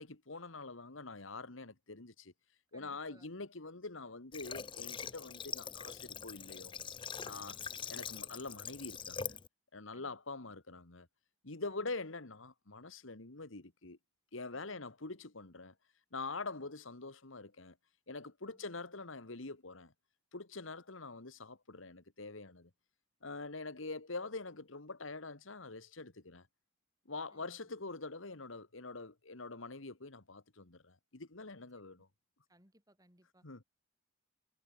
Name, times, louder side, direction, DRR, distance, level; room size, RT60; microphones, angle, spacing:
voice 1, 0.0-2.3 2.7-6.9 7.2-9.4 9.7-11.1 11.4-14.0 14.3-15.7 16.1-17.8 18.1-19.9 20.3-22.7 23.2-26.5 27.1-32.1 33.4-33.6, left 3 dB, 75° left, 2.0 m, -45 dB
voice 2, 2.7-3.3 9.9-10.5 11.7-11.9 14.5-14.9 16.5-16.7 18.5-18.7 27.3-27.9 31.8-32.0 32.5-33.5, right 1 dB, 20° right, 7.1 m, -67 dB
Water / Water tap faucet, 4.3-9.5, left 7 dB, 25° left, 0.5 m, -43 dB
head